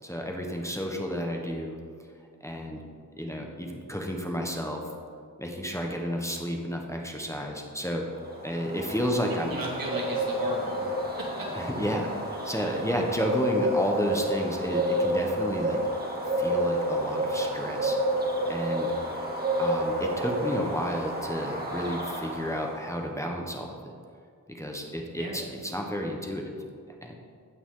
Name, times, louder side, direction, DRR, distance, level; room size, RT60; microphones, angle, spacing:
voice 1, 0.0-1.8 2.4-2.8 3.2-4.8 5.4-8.1 8.4-9.6 11.5-15.8 16.2-18.0 18.5-18.9 19.6-23.8 24.5-26.5 27.0-27.2, equal, 10° left, 1 dB, 1.2 m, -31 dB
sound 1, 8.2-22.8, right 1 dB, 25° right, 2.1 m, -30 dB
voice 2, 9.4-10.9 11.2-11.5 25.1-25.4, right 1 dB, 75° right, -3 dB, 2.5 m, -35 dB
16.0 x 6.0 x 3.9 m, 2.2 s
cardioid pair, 55°, 35 cm